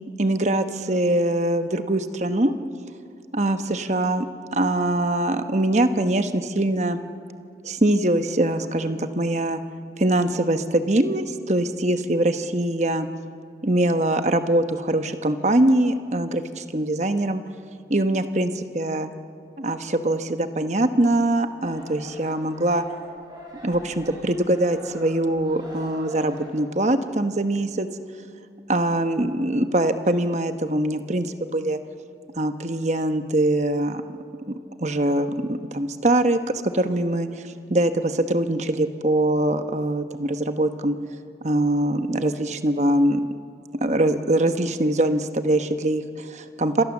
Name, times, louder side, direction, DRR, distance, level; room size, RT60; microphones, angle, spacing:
voice 1, 0.2-2.6 3.3-4.3 4.5-7.0 7.6-9.6 10.0-13.1 13.6-17.4 17.9-19.1 19.6-22.8 23.6-27.9 28.7-31.8 32.4-34.2 34.8-36.4 36.7-41.0 41.4-43.2 43.8-46.8, right 1 dB, 40° right, 8 dB, 1.1 m, -23 dB
sound 1, 21.6-26.6, equal, 25° right, 6.2 m, -44 dB
28.5 x 26.5 x 7.3 m, 2.4 s
head